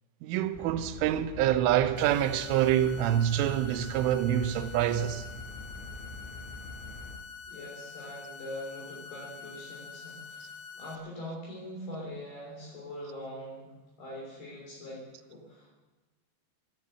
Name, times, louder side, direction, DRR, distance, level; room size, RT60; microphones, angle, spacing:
voice 1, 0.2-5.2, right 11 dB, 85° right, 3.2 m, -26 dB
sound 1, 0.5-7.1, left 2 dB, ahead, 4.1 m, -44 dB
sound 2, 2.0-11.0, left 6 dB, 80° left, 3.5 m, -46 dB
voice 2, 7.5-15.7, left 1 dB, 55° left, 5.0 m, -43 dB
14.0 x 11.5 x 7.8 m
omnidirectional pair, 5.7 m